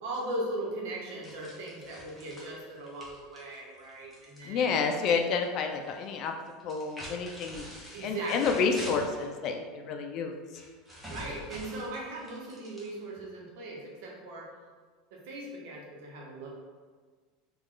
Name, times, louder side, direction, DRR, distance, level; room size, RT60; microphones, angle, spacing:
voice 1, 0.0-4.7 7.9-8.6 11.1-14.5 15.1-16.5, right 1 dB, 70° right, -2 dB, 0.9 m, -38 dB
sound 1, 1.2-5.2 5.4-6.0 6.6-9.3 10.5-13.2, equal, 5° right, 1.0 m, -46 dB
voice 2, 4.5-6.3 6.6-7.6 8.0-10.3, left 5 dB, 50° left, 4 dB, 0.4 m, -29 dB
3.0 x 2.4 x 3.7 m, 1.5 s
supercardioid pair, 120°, 0 cm